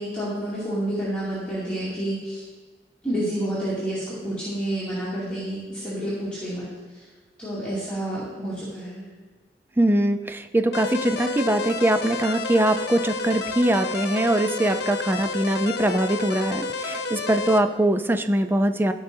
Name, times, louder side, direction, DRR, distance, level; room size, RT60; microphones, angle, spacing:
voice 1, 0.0-2.4 3.0-6.7 6.9-7.0 7.4-9.0, right 1 dB, 5° left, -12 dB, 2.4 m, -29 dB
voice 2, 9.8-18.9, right 1 dB, 15° right, 8 dB, 0.4 m, -22 dB
sound 1, 10.7-17.6, left 3 dB, 65° left, 0.6 m, -30 dB
15.5 x 5.4 x 2.7 m, 1.4 s
head